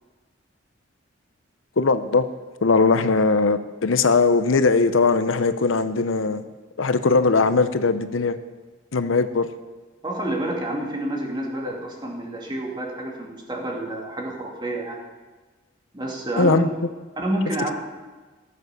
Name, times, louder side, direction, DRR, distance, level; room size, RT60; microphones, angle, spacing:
voice 1, 1.8-2.2 2.6-6.4 6.8-8.4 8.9-9.5 16.4-16.7, left 4 dB, 85° left, 11 dB, 0.7 m, -20 dB
voice 2, 10.0-15.0 15.9-16.6 17.2-17.7, right 1 dB, 25° right, -1 dB, 2.2 m, -28 dB
17.0 x 7.2 x 6.7 m, 1.3 s
head